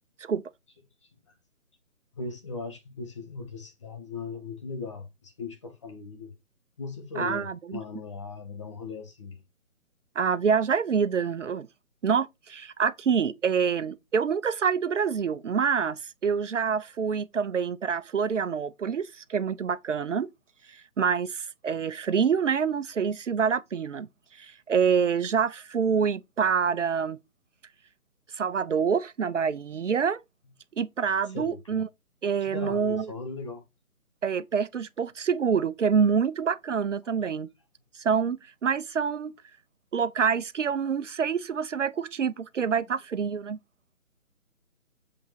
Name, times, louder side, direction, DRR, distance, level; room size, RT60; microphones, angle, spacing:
voice 1, 2.1-6.3 6.8-9.4 31.2-31.8 32.4-33.6, left 4 dB, 20° left, 1.0 m, -38 dB
voice 2, 7.2-7.8 10.2-11.7 12.0-20.3 21.0-24.1 24.4-27.2 28.4-30.2 30.8-31.9 32.2-33.1 34.2-37.5 38.0-39.3 39.9-43.6, right 6 dB, 60° right, 0.6 m, -26 dB
7.7 x 3.5 x 4.6 m
hypercardioid pair, 160°, 42 cm